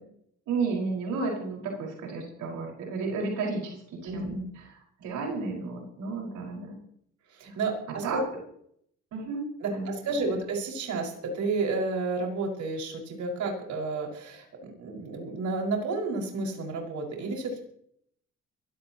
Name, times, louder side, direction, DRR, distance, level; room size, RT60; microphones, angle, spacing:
voice 1, 0.5-6.8 8.0-8.2 9.1-9.4 9.7-10.0, right 4 dB, 85° right, -1 dB, 5.6 m, -32 dB
voice 2, 4.0-4.5 7.3-8.2 9.6-17.6, right 3 dB, 70° right, 0 dB, 6.0 m, -31 dB
23.0 x 16.0 x 3.1 m, 0.67 s
cardioid pair, 90°, 30 cm